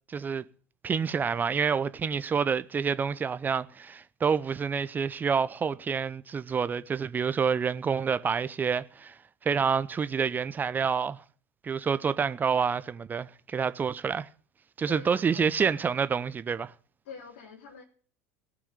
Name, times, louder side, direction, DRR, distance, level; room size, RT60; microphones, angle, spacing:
voice 1, 0.1-0.4 0.8-9.1 9.4-11.2 11.6-14.3 14.8-16.7, right 6 dB, 25° right, 0.7 m, -28 dB
voice 2, 14.9-15.5 17.0-17.8, left 5 dB, 65° left, 3.4 m, -45 dB
18.0 x 6.2 x 9.6 m
figure-of-eight pair, 70°, 7 cm